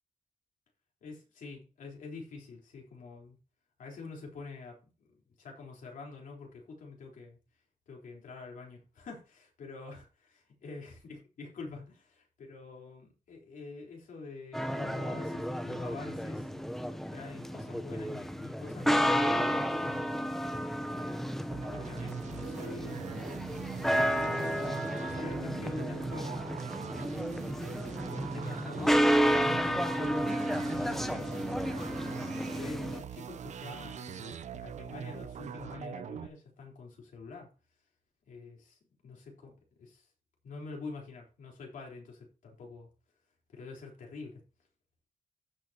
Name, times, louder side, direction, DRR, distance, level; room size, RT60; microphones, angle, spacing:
voice 1, 1.0-3.4 3.8-4.8 5.4-7.4 7.9-11.8 12.1-16.5 17.1-20.3 20.9-21.4 21.7-23.2 24.1-26.4 26.9-27.3 27.7-32.0 32.2-37.5 38.3-38.8 39.0-39.5 39.8-40.1 40.4-42.9 43.5-44.4, left 3 dB, 80° left, 0 dB, 3.9 m, -46 dB
sound 1, 14.5-33.0, equal, ahead, 0.8 m, -31 dB
sound 2, 21.5-36.3, right 8 dB, 60° right, 0.7 m, -42 dB
15.5 x 6.3 x 2.9 m, 0.32 s
wide cardioid pair, 155°, 13 cm